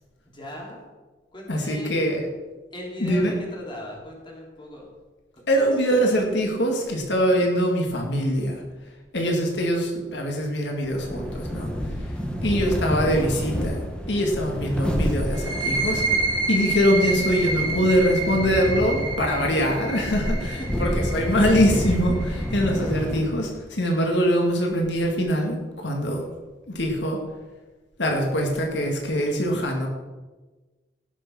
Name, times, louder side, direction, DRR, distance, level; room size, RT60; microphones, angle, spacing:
voice 1, 0.3-0.8 1.3-2.0 2.7-4.9 5.4-5.5 20.4-20.7, left 1 dB, 30° left, -2 dB, 3.5 m, -38 dB
voice 2, 1.5-2.3 3.0-3.4 5.5-8.6 9.1-11.7 12.4-13.8 14.1-16.0 16.5-26.2 26.7-27.2 28.0-29.9, equal, 80° left, 1 dB, 2.1 m, -23 dB
sound 1, 10.8-23.6, equal, 5° left, 1.7 m, -29 dB
sound 2, 15.3-22.7, right 3 dB, 25° right, 2.8 m, -29 dB
17.5 x 6.6 x 6.1 m, 1.3 s
head